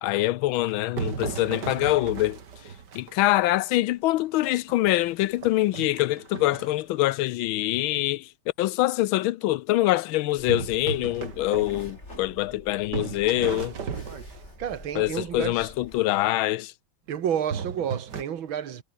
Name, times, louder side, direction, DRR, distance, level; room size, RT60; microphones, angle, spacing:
voice 1, 0.0-2.4 2.9-8.3 8.6-13.7 14.9-16.7, left 16 dB, 85° left, 1.4 m, -24 dB
sound 1, 0.6-3.4 3.9-4.0 4.5-6.8 10.5-12.6 12.9-14.7 17.5-18.2, right 6 dB, 55° right, 2.5 m, -35 dB
sound 2, 10.4-16.0, left 2 dB, 30° left, 6.5 m, -47 dB
voice 2, 14.3-15.7 17.1-18.8, right 9 dB, 75° right, 2.3 m, -31 dB
omnidirectional pair, 2.2 m